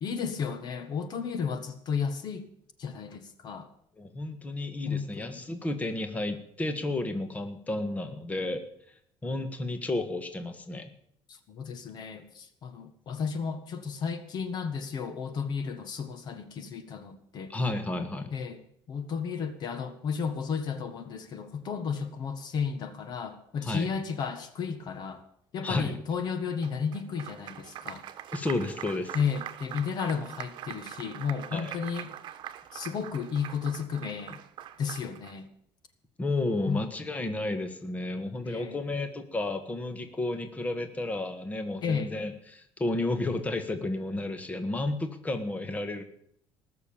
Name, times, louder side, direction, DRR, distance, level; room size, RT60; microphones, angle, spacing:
voice 1, 0.0-2.5 2.8-3.7 4.9-5.4 11.5-17.5 18.3-18.6 18.9-25.2 25.5-28.0 29.1-32.1 32.7-34.4 34.8-35.5 36.7-36.8 38.4-38.8 41.8-42.1, left 6 dB, 50° left, 11 dB, 1.5 m, -33 dB
voice 2, 4.0-8.6 9.2-10.9 17.5-18.3 23.6-23.9 25.6-26.0 28.3-29.2 31.5-31.7 36.2-46.0, left 2 dB, 15° left, 8 dB, 1.6 m, -32 dB
Applause, 26.6-35.4, right 11 dB, 55° right, 1.2 m, -43 dB
19.5 x 6.7 x 8.8 m, 0.68 s
cardioid pair, 145°, 9 cm